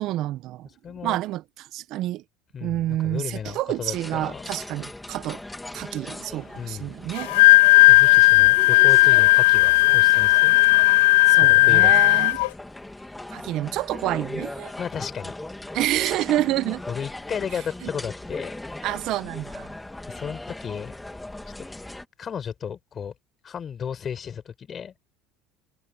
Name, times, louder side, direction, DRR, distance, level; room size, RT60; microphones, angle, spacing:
voice 1, 0.0-0.7 1.0-2.2 2.6-5.4 5.7-7.3 7.8-7.9 11.3-12.4 13.3-14.7 15.7-16.8 17.8-17.9 18.8-19.7, right 15 dB, 60° right, 1.2 m, -28 dB
voice 2, 0.8-1.2 2.5-4.5 6.6-6.9 7.9-10.6 11.5-12.3 14.8-15.3 16.9-18.5 20.1-20.9 22.2-23.1 23.4-24.9, left 7 dB, 35° left, 5.6 m, -34 dB
sound 1, 3.9-22.1, left 2 dB, 10° left, 3.0 m, -39 dB
Wind instrument woodwind instrument, 7.2-12.5, left 23 dB, 80° left, 0.3 m, -15 dB
supercardioid pair, 95°, 0 cm